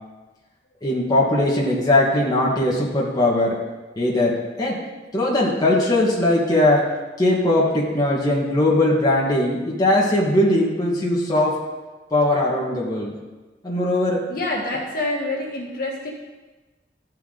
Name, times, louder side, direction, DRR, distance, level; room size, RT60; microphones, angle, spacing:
voice 1, 0.8-3.6 4.0-4.8 5.1-6.9 7.2-11.6 12.1-13.1 13.6-14.3, left 1 dB, 20° left, -4 dB, 1.4 m, -20 dB
voice 2, 14.3-16.1, left 2 dB, 55° left, -2 dB, 1.5 m, -27 dB
13.5 x 4.6 x 3.8 m, 1.2 s
head